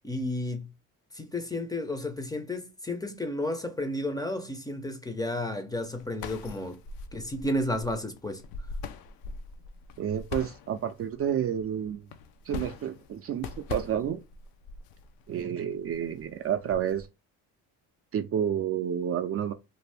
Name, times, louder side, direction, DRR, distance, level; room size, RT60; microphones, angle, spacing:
voice 1, 0.0-0.7 1.1-6.8 7.1-8.4, left 1 dB, 10° left, 0.5 m, -32 dB
sound 1, 5.8-17.1, left 4 dB, 80° left, 0.5 m, -42 dB
voice 2, 10.0-12.1 12.5-14.2 15.3-17.1 18.1-19.5, right 9 dB, 40° right, 0.4 m, -30 dB
2.6 x 2.5 x 3.3 m
cardioid pair, 105°, 35 cm